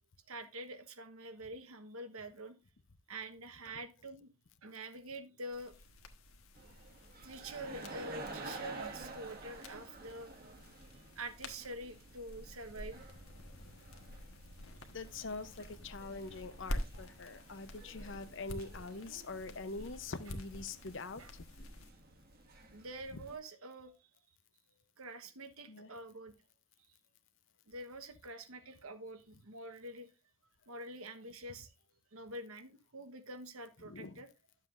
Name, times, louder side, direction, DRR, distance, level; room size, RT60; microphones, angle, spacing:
voice 1, 0.3-2.6 3.1-4.3 4.6-5.7 7.2-10.3 11.2-13.0 21.2-21.3 22.7-24.1 25.0-26.3 27.7-30.1 30.7-31.7 32.1-34.3, right 1 dB, 80° right, 1.2 m, -46 dB
sound 1, 5.5-21.9, left 1 dB, 70° left, 1.3 m, -48 dB
sound 2, 6.6-23.4, right 2 dB, 45° right, 1.3 m, -51 dB
voice 2, 14.9-21.4 25.7-25.9 33.8-34.2, left 3 dB, 55° left, 0.7 m, -44 dB
11.5 x 7.4 x 2.5 m
head